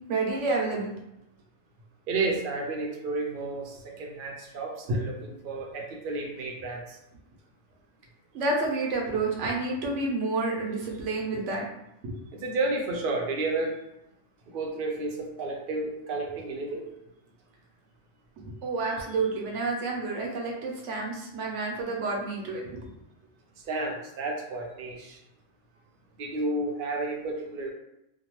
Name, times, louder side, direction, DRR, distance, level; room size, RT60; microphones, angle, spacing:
voice 1, 0.1-0.9 4.9-5.0 8.3-11.7 12.0-12.1 18.6-22.9, right 3 dB, 80° right, -1 dB, 1.0 m, -29 dB
voice 2, 2.1-6.8 12.3-13.7 14.5-16.8 23.7-25.1 26.2-27.7, right 2 dB, 55° right, 1 dB, 0.7 m, -31 dB
2.8 x 2.2 x 3.0 m, 0.84 s
omnidirectional pair, 1.2 m